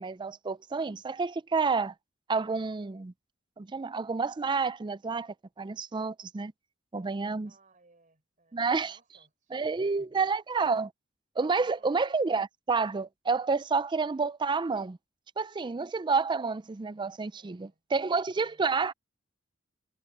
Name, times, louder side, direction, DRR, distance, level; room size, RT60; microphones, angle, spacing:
voice 1, 0.0-1.9 2.3-3.1 3.6-6.5 6.9-7.5 8.5-9.0 9.5-10.9 11.4-15.0 15.4-18.9, right 4 dB, 25° right, 0.4 m, -29 dB
voice 2, 7.0-10.0 11.6-12.0 17.4-18.8, right 3 dB, 40° right, 5.1 m, -64 dB
head